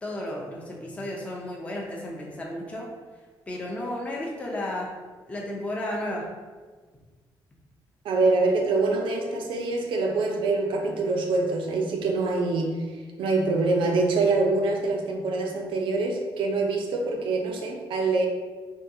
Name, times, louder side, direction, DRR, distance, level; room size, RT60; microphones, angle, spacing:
voice 1, 0.0-2.9 3.5-4.9 5.3-6.3, left 1 dB, 15° left, -2 dB, 0.4 m, -33 dB
voice 2, 8.0-18.3, right 3 dB, 80° right, 2 dB, 0.5 m, -25 dB
3.5 x 2.2 x 2.7 m, 1.4 s
cardioid pair, 135°, 8 cm